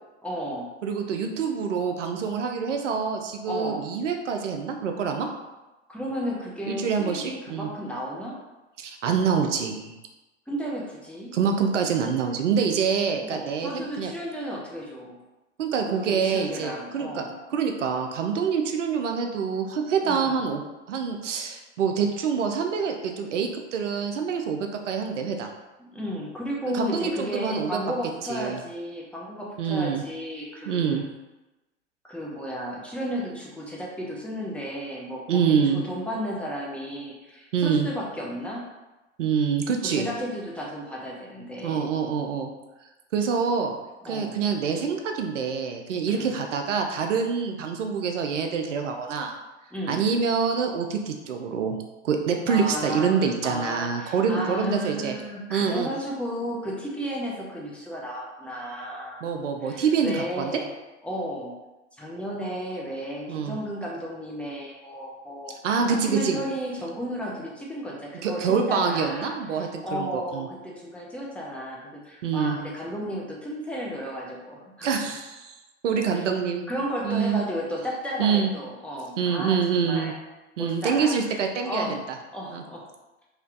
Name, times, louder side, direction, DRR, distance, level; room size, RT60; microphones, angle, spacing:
voice 1, 0.2-0.7 3.5-3.8 5.9-8.3 10.5-11.3 13.2-15.2 15.8-17.3 20.0-20.3 25.9-31.0 32.0-38.6 39.8-41.8 44.0-44.4 46.0-46.4 49.7-50.0 52.5-59.2 59.6-60.7 61.0-61.5 62.0-65.6 65.9-74.9 76.1-76.2 76.7-80.1 80.6-81.3 81.6-82.1 82.3-82.8, equal, 5° left, -4 dB, 0.7 m, -33 dB
voice 2, 0.8-5.3 6.7-7.7 8.8-9.9 11.3-14.1 15.6-17.2 17.5-25.5 26.7-27.8 28.3-28.6 29.6-30.0 30.7-31.0 35.3-35.8 37.5-37.9 39.2-40.1 41.6-42.5 43.1-43.8 44.0-49.3 49.9-51.8 52.0-55.2 55.5-55.9 59.2-60.5 63.3-63.6 65.6-66.4 68.2-70.5 72.2-72.6 74.8-75.6 75.8-76.7 77.0-77.4 78.2-78.5 79.2-80.1 80.6-82.0 82.5-82.6, right 6 dB, 85° right, 4 dB, 0.5 m, -26 dB
3.2 x 2.9 x 2.4 m, 1.1 s
figure-of-eight pair, 80°, 36 cm